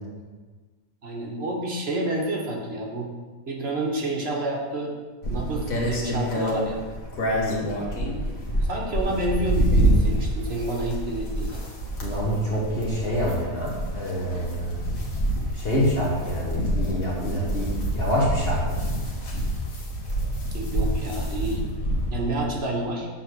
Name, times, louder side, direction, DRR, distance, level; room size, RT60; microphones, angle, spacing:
voice 1, 1.0-3.1 3.5-5.0 5.3-6.8 8.7-11.7 14.3-14.5 20.5-21.6 22.1-23.1, right 1 dB, 45° right, -2 dB, 1.4 m, -29 dB
sound 1, 5.2-22.5, right 1 dB, 70° left, 1.7 m, -27 dB
voice 2, 7.3-7.7 12.0-14.7 15.5-17.7 17.9-18.8, equal, 45° left, -5 dB, 1.5 m, -26 dB
6.9 x 4.0 x 6.2 m, 1.3 s
omnidirectional pair, 1.5 m